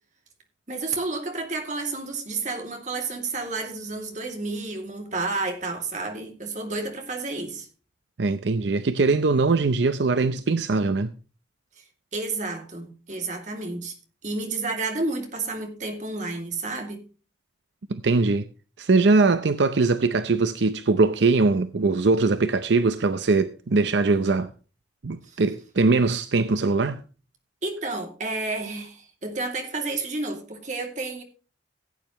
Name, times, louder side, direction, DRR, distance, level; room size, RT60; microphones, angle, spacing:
voice 1, 0.7-7.7 11.8-11.9 12.1-13.9 14.2-17.0 25.2-25.4 27.6-31.2, right 3 dB, 40° right, 2.6 m, -31 dB
voice 2, 8.2-11.1 17.9-18.5 18.8-24.5 25.0-27.0, right 3 dB, 75° right, 0.6 m, -21 dB
16.5 x 8.9 x 3.1 m
head